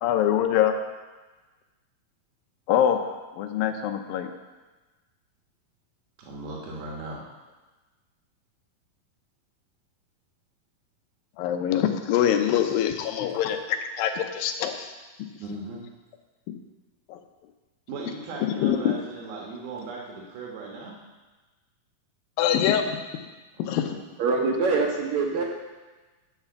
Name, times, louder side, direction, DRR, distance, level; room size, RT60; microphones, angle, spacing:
voice 1, 0.0-0.8 2.7-4.3 11.4-14.9 16.5-16.6 17.1-17.2 18.6-18.9 22.4-23.0 23.7-24.0, left 9 dB, 80° left, 6 dB, 2.4 m, -24 dB
voice 2, 6.2-7.3 15.4-15.8 17.9-21.0 23.6-23.9, right 3 dB, 90° right, -2 dB, 3.2 m, -38 dB
voice 3, 24.2-25.5, right 4 dB, 70° right, 0 dB, 1.9 m, -24 dB
9.7 x 5.7 x 6.9 m, 1.2 s
omnidirectional pair, 4.2 m